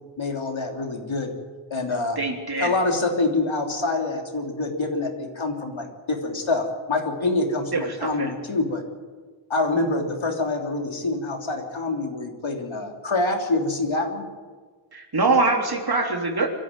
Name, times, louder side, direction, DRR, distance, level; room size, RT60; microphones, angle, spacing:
voice 1, 0.2-1.3 1.7-2.2 2.6-8.8 9.5-14.3, left 2 dB, 65° left, 2 dB, 3.3 m, -26 dB
voice 2, 2.2-2.7 7.7-8.3 14.9-16.5, right 3 dB, 50° right, 2 dB, 3.4 m, -23 dB
25.0 x 14.0 x 9.2 m, 1.5 s
wide cardioid pair, 95°, 50 cm